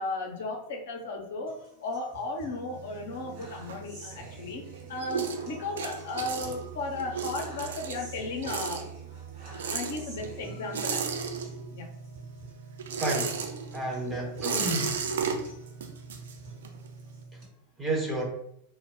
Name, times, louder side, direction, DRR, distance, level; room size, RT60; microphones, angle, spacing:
voice 1, 0.0-4.6 4.9-8.9 9.7-11.0 11.7-11.9, left 3 dB, 60° left, 1 dB, 0.6 m, -35 dB
sound 1, 1.5-17.5, right 4 dB, 45° right, 1.1 m, -45 dB
sound 2, 2.7-4.4 4.7-11.9 12.2-16.9, right 6 dB, 60° right, 0.4 m, -34 dB
voice 2, 13.0-13.4 13.7-14.9 17.8-18.2, right 1 dB, 10° right, -1 dB, 0.7 m, -30 dB
2.1 x 2.1 x 3.3 m, 0.76 s
figure-of-eight pair, 90°, 0 cm